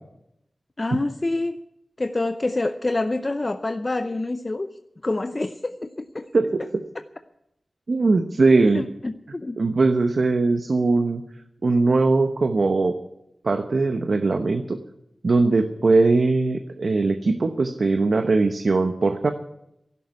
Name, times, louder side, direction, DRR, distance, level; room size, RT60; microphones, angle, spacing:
voice 1, 0.8-1.6 2.0-4.7 5.0-6.3 8.7-9.6, left 2 dB, 35° left, 9 dB, 0.6 m, -27 dB
voice 2, 7.9-8.8 9.6-11.2 11.6-12.9 13.4-14.8 15.2-19.3, right 3 dB, 65° right, 7 dB, 0.9 m, -20 dB
12.0 x 11.5 x 9.7 m, 0.84 s
wide cardioid pair, 60°, 0 cm